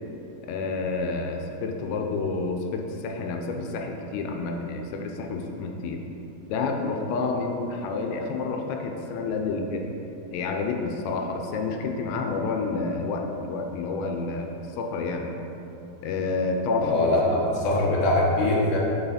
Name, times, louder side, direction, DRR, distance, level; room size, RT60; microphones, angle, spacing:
voice 1, 0.4-6.0 6.5-9.9 10.3-15.3 16.0-17.9, left 3 dB, 85° left, 3 dB, 2.7 m, -29 dB
voice 2, 16.8-18.8, left 1 dB, 70° left, -5 dB, 1.7 m, -22 dB
6.2 x 5.5 x 4.1 m, 3.0 s
omnidirectional pair, 4.9 m